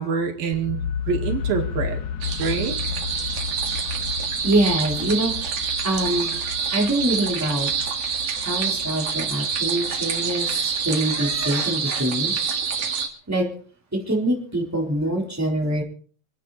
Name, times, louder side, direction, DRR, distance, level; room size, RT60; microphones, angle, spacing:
voice 1, 0.0-2.0 2.4-2.8, right 6 dB, 85° right, 3.9 m, -26 dB
sound 1, 0.5-12.4, left 7 dB, 60° left, 2.4 m, -33 dB
sound 2, 2.2-13.1, right 6 dB, 50° right, 2.7 m, -27 dB
voice 2, 4.4-5.5 5.8-8.0 8.4-12.4 13.0-13.5 13.9-15.8, right 1 dB, 5° right, 3.9 m, -25 dB
27.0 x 10.0 x 4.3 m
omnidirectional pair, 4.0 m